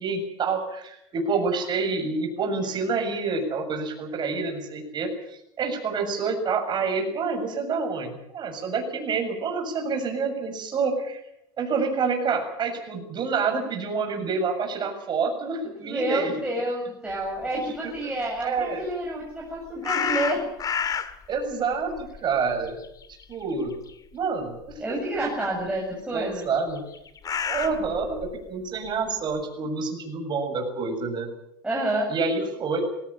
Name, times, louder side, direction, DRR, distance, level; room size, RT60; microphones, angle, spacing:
voice 1, 0.0-11.2 11.6-16.4 17.8-17.9 18.4-18.8 21.3-22.8 23.3-23.8 24.1-24.8 26.1-26.8 27.5-31.3 32.1-32.8, right 4 dB, 40° right, 5 dB, 7.2 m, -28 dB
voice 2, 15.8-20.4 24.8-26.5 31.6-32.1, right 1 dB, 10° right, -3 dB, 7.3 m, -29 dB
sound 1, 19.8-21.3 21.7-23.4 23.7-23.9 24.7-24.8 26.6-28.4, left 7 dB, 30° left, 1.9 m, -29 dB
22.0 x 17.5 x 8.9 m, 0.79 s
supercardioid pair, 115°, 12 cm